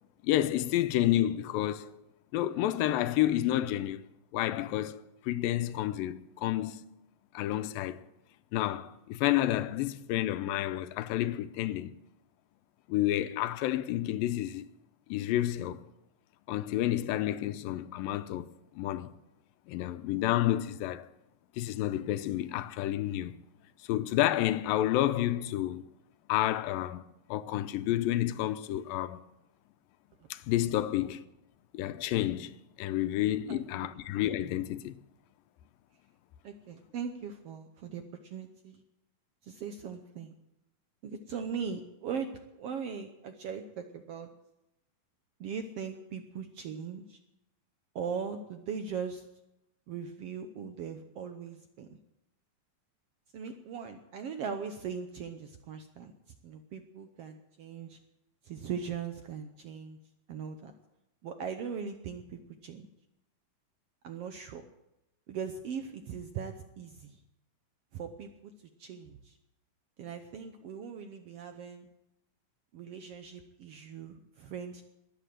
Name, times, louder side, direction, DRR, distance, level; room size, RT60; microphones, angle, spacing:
voice 1, 0.2-2.0 2.3-4.0 4.3-6.8 7.3-8.0 8.5-11.9 12.9-14.7 15.1-15.9 16.5-18.5 18.8-19.1 19.7-21.1 21.6-23.4 23.9-25.8 26.3-29.3 30.3-31.3 31.7-35.0, left 13 dB, 85° left, 2.4 m, -30 dB
voice 2, 33.5-33.9 36.4-38.8 39.4-40.4 41.0-44.3 45.4-47.2 47.9-49.2 49.9-52.0 53.3-56.1 56.4-58.0 58.4-60.0 60.3-60.7 61.2-62.9 64.0-64.6 65.3-67.2 67.9-68.5 68.8-69.4 70.0-71.9 72.7-74.8, right 6 dB, 85° right, 1.3 m, -40 dB
21.0 x 9.0 x 7.6 m
omnidirectional pair, 4.0 m